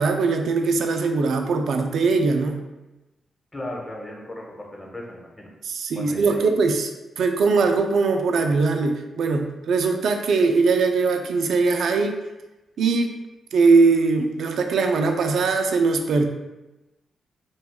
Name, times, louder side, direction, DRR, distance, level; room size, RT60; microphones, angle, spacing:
voice 1, 0.0-2.6 5.6-6.9 7.2-12.1 12.8-13.1 13.5-16.3, right 4 dB, 70° right, 5 dB, 0.3 m, -21 dB
voice 2, 3.5-5.5 5.9-6.4, left 1 dB, 20° left, -1 dB, 1.0 m, -36 dB
2.5 x 2.2 x 3.5 m, 1.0 s
hypercardioid pair, 40°, 0 cm